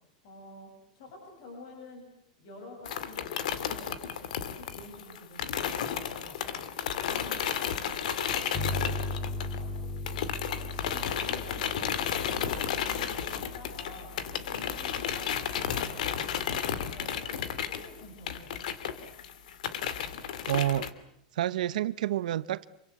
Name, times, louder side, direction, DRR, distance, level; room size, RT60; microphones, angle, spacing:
voice 1, 0.2-2.1 2.4-6.6 7.0-12.0 12.3-16.6 16.9-19.1, left 2 dB, 45° left, 8.0 m, -49 dB
sound 1, 2.9-9.8 10.1-20.9, left 8 dB, 75° left, 2.4 m, -33 dB
sound 2, 8.5-17.8, left 1 dB, 15° left, 2.2 m, -39 dB
voice 2, 20.5-20.9 21.3-22.7, right 12 dB, 80° right, 1.0 m, -29 dB
27.5 x 24.0 x 8.2 m
supercardioid pair, 175°, 4 cm